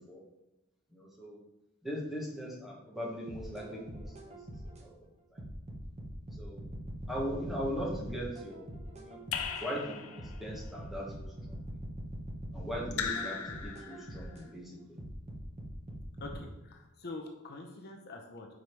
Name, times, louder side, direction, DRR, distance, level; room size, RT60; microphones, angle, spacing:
voice 1, 0.9-1.4 1.8-4.3 4.6-4.9 5.3-5.4 6.4-6.6 7.1-8.7 8.9-11.6 12.5-15.0, equal, ahead, -4 dB, 1.6 m, -40 dB
sound 1, 3.3-4.8 5.4-9.6 10.2-14.4 15.0-16.4, right 1 dB, 30° right, 1.0 m, -43 dB
Raindrop / Drip, 9.3-10.5 12.9-14.3, left 7 dB, 85° left, 0.6 m, -38 dB
voice 2, 16.2-18.5, left 2 dB, 50° left, 1 dB, 0.8 m, -45 dB
5.4 x 5.0 x 4.6 m, 0.94 s
head